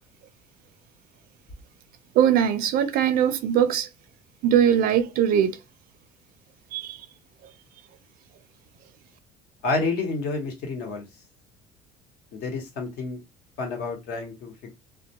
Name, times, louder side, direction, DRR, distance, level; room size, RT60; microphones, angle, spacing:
voice 1, 2.2-3.9 4.4-5.6 6.7-7.0, right 9 dB, 60° right, 0.4 m, -21 dB
voice 2, 9.6-11.1 12.3-13.2 13.6-14.7, left 3 dB, 70° left, 1.0 m, -29 dB
2.2 x 2.2 x 2.8 m
cardioid pair, 110°, 17 cm